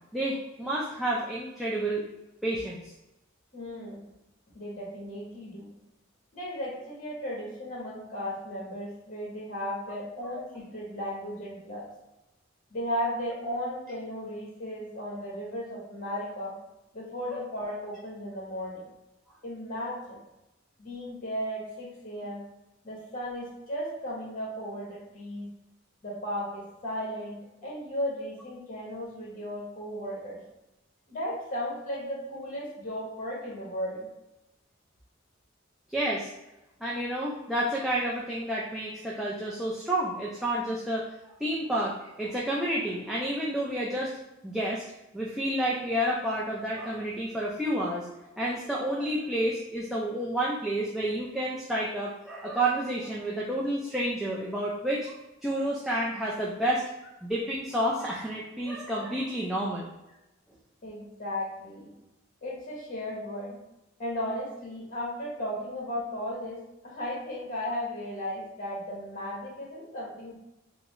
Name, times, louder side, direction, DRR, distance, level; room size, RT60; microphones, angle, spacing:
voice 1, 0.1-2.0 2.4-2.9 17.3-17.4 35.9-36.3 36.8-44.1 44.4-44.8 45.1-48.1 48.3-55.1 55.4-56.9 57.2-59.9, right 1 dB, ahead, -5 dB, 0.3 m, -30 dB
voice 2, 3.5-4.0 4.5-5.7 6.3-11.9 12.7-16.6 16.9-18.9 19.4-20.2 20.8-22.4 22.8-25.5 26.0-30.4 31.1-34.1 60.8-61.9 62.4-63.6 64.0-70.3, equal, 40° left, -4 dB, 0.9 m, -35 dB
3.6 x 2.0 x 3.0 m, 0.95 s
head